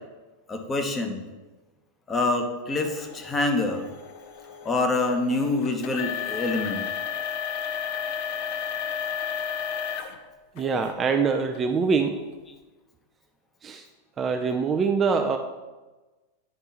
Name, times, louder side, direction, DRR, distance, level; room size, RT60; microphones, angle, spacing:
voice 1, 0.5-1.2 2.1-3.8 4.6-6.8, left 2 dB, 20° left, 4 dB, 1.0 m, -26 dB
sound 1, 2.8-10.2 10.6-10.9 11.5-11.6 12.3-12.4, left 8 dB, 45° left, 0.7 m, -33 dB
voice 2, 10.6-12.2 13.6-13.9 14.2-15.4, right 5 dB, 25° right, 5 dB, 0.4 m, -24 dB
9.8 x 5.4 x 2.9 m, 1.2 s
figure-of-eight pair, 90°, 0 cm